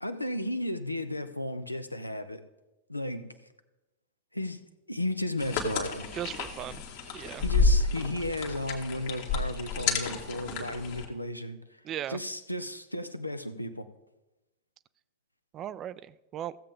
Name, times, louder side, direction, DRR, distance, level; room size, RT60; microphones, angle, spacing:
voice 1, 0.0-2.4 2.9-3.3 4.3-4.6 4.9-6.1 7.2-11.6 12.1-13.8, left 1 dB, 85° left, 11 dB, 0.6 m, -34 dB
sound 1, 5.4-11.1, left 3 dB, 50° left, 1.4 m, -30 dB
voice 2, 6.1-6.8 7.1-7.4 11.8-12.2 15.5-16.6, right 11 dB, 30° right, 17 dB, 0.4 m, -37 dB
15.0 x 7.5 x 3.5 m, 1.0 s
figure-of-eight pair, 90°, 0 cm